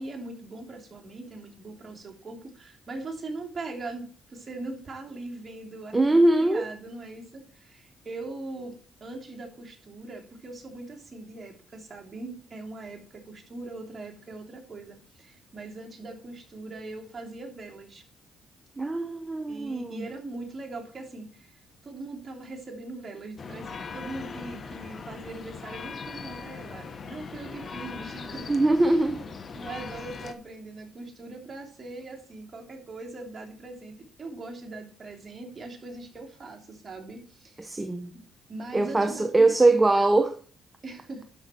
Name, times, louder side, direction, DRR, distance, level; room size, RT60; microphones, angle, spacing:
voice 1, 0.0-18.0 19.5-21.5 21.8-28.5 28.8-29.0 29.5-37.7 38.5-40.2 40.8-41.3, right 2 dB, 30° right, 3.2 m, -41 dB
voice 2, 5.9-6.7 18.8-20.0 28.5-29.2 37.6-38.1 38.7-40.4, right 2 dB, 15° right, 0.9 m, -22 dB
sound 1, 23.4-30.3, left 5 dB, 45° left, 1.2 m, -40 dB
12.0 x 5.5 x 4.5 m
cardioid pair, 90°, 0 cm